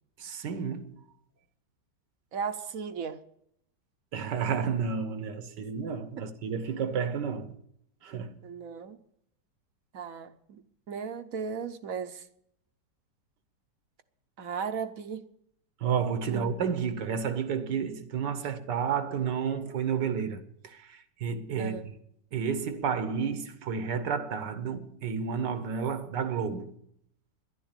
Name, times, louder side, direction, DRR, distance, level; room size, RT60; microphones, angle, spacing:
voice 1, 0.2-0.9 4.1-7.6 8.0-8.4 15.8-22.0 22.3-26.7, right 6 dB, 80° right, 1.8 m, -31 dB
voice 2, 2.3-3.2 8.4-9.0 9.9-10.6 10.9-12.2 14.4-15.2 16.3-16.6 21.6-21.9, right 6 dB, 60° right, 1.1 m, -36 dB
11.0 x 11.0 x 8.9 m
omnidirectional pair, 1.8 m